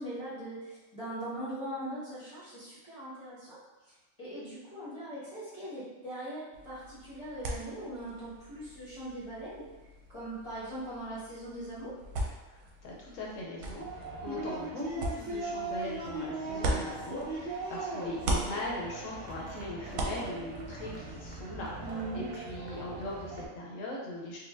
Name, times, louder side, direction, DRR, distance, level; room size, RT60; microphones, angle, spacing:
voice 1, 0.0-3.6 3.8-3.9 4.2-9.6 10.1-12.0 21.8-22.2, right 1 dB, 25° left, -11 dB, 1.0 m, -40 dB
sound 1, 6.5-17.7 18.0-21.4, right 1 dB, 85° right, 1.0 m, -39 dB
voice 2, 12.5-21.7 22.1-24.4, left 1 dB, 70° left, -3 dB, 1.0 m, -40 dB
sound 2, 13.8-23.5, right 2 dB, 55° right, 0.7 m, -39 dB
4.0 x 2.4 x 2.5 m, 1.1 s
omnidirectional pair, 1.4 m